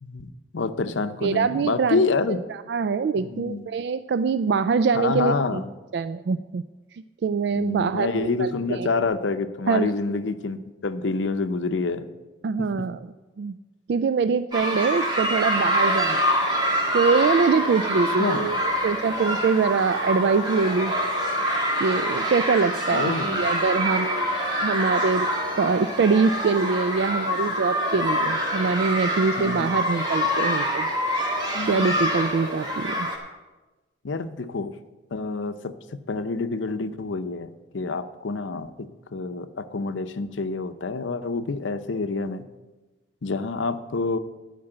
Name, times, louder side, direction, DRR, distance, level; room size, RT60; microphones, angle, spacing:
voice 1, 0.0-2.4 3.2-3.6 4.9-5.7 7.5-12.1 12.6-12.9 18.2-18.5 22.9-23.4 29.4-29.7 31.5-32.0 34.0-34.7 35.1-42.4 43.2-44.2, left 3 dB, 85° left, 10 dB, 0.6 m, -28 dB
voice 2, 1.2-2.0 2.3-5.6 5.9-6.6 6.9-8.9 9.7-9.9 12.4-13.0 13.4-13.5 13.9-16.2 16.9-18.6 18.8-20.9 21.8-24.3 24.6-25.3 25.6-30.9 31.7-33.1, right 5 dB, 60° right, 13 dB, 0.3 m, -24 dB
sound 1, 14.5-33.2, equal, 25° right, 1.7 m, -25 dB
12.5 x 5.3 x 7.8 m, 1.2 s
head